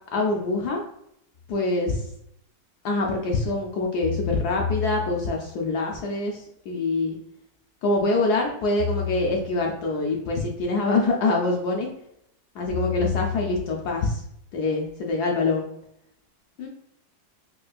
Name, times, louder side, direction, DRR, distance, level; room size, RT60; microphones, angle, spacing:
voice 1, 0.1-0.8 1.5-2.0 2.8-7.2 7.8-11.9 12.5-14.2 14.5-15.7 16.6-16.7, left 2 dB, 70° left, 0 dB, 1.0 m, -25 dB
sound 1, 1.4-1.5 4.0-5.6 8.8-9.9 12.7-14.1, left 8 dB, 90° left, 0.6 m, -31 dB
4.5 x 2.4 x 2.4 m, 0.76 s
omnidirectional pair, 2.0 m